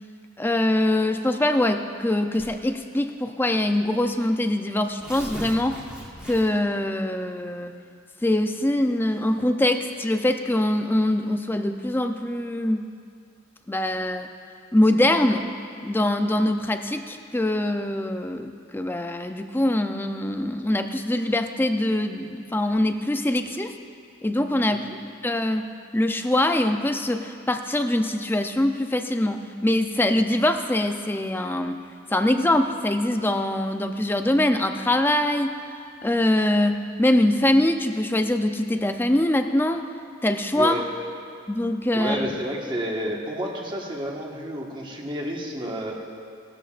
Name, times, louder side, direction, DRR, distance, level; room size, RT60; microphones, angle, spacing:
voice 1, 0.4-5.8 6.2-7.7 8.2-12.9 13.7-14.3 14.7-15.5 15.8-23.8 24.2-24.9 25.2-25.7 25.9-31.8 32.1-35.6 36.0-39.9 40.2-40.8 41.5-42.3, left 1 dB, 10° left, 7 dB, 0.5 m, -23 dB
Tearing, 2.3-2.7 3.6-3.7 4.0-4.1 4.8-6.7, equal, 5° right, 1.5 m, -39 dB
voice 2, 24.7-25.0 40.5-40.9 41.9-45.9, equal, 25° right, -1 dB, 1.4 m, -30 dB
18.5 x 13.0 x 2.5 m, 2.3 s
head